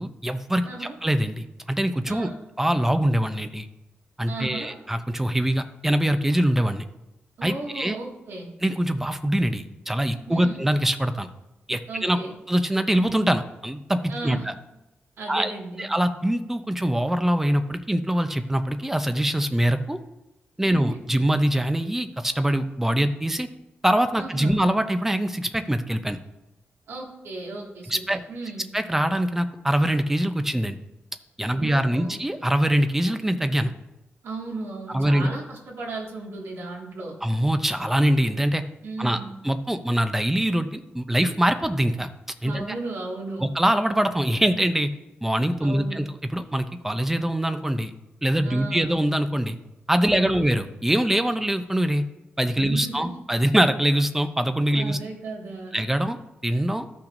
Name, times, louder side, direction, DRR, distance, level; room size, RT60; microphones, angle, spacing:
voice 1, 0.0-2.3 2.6-3.7 4.2-6.8 7.4-8.0 8.6-11.3 11.7-12.2 12.5-14.5 15.3-15.5 15.8-20.0 20.6-23.5 23.8-26.2 27.9-28.2 28.7-30.8 31.4-33.7 34.9-35.3 37.2-38.6 39.0-39.2 39.4-42.1 42.4-42.7 43.4-44.9 45.2-46.1 46.3-47.9 48.2-49.6 49.9-52.0 52.4-55.0 55.7-56.9, right 1 dB, 10° right, 9 dB, 0.6 m, -23 dB
voice 2, 0.6-1.0 2.1-2.4 4.3-4.8 7.4-8.5 10.3-10.6 11.9-12.4 14.1-14.5 15.2-15.9 20.6-21.0 24.1-24.6 26.9-28.7 31.5-32.2 34.2-37.2 38.8-39.3 42.4-43.5 45.6-46.0 48.4-48.9 50.1-50.4 52.6-53.2 54.7-55.8, right 3 dB, 80° right, -2 dB, 2.0 m, -36 dB
13.5 x 5.8 x 2.6 m, 0.95 s
wide cardioid pair, 120°, 4 cm